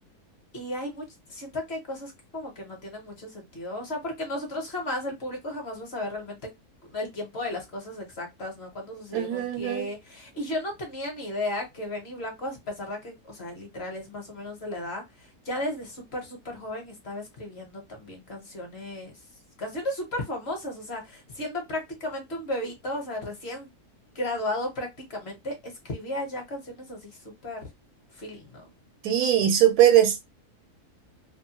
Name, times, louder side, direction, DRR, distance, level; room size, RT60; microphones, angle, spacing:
voice 1, 0.5-6.4 6.9-19.2 19.6-23.7 24.1-27.7 28.1-28.6, left 1 dB, 50° left, 1.0 m, -34 dB
voice 2, 9.1-9.9 29.0-30.2, right 11 dB, 80° right, 1.1 m, -20 dB
2.7 x 2.2 x 2.8 m
omnidirectional pair, 1.6 m